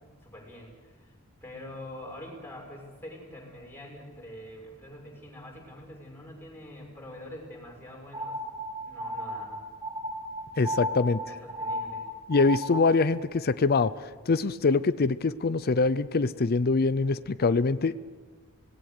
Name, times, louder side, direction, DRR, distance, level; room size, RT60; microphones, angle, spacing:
voice 1, 0.2-1.1 1.4-8.4 8.8-9.6 10.9-11.0 11.2-12.1, left 1 dB, 10° left, -1 dB, 6.0 m, -45 dB
sound 1, 8.1-13.0, equal, 25° right, 3.1 m, -34 dB
voice 2, 10.6-11.2 12.3-13.9 14.3-18.0, left 3 dB, 45° left, 14 dB, 0.6 m, -24 dB
25.5 x 19.0 x 6.6 m, 1.4 s
head